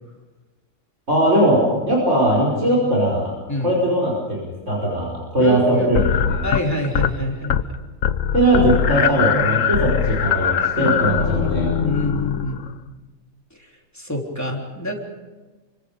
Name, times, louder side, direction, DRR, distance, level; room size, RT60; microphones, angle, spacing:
voice 1, 1.1-3.2 3.6-6.5 8.3-11.7, right 1 dB, 60° right, -3 dB, 5.8 m, -19 dB
voice 2, 5.4-5.9 6.4-7.8 10.7-12.7 13.9-15.0, left 1 dB, 10° left, 0 dB, 3.7 m, -26 dB
sound 1, 6.0-7.2 7.4-7.8 8.0-12.8, left 9 dB, 70° left, 1.3 m, -21 dB
28.5 x 25.5 x 5.2 m, 1.3 s
omnidirectional pair, 1.4 m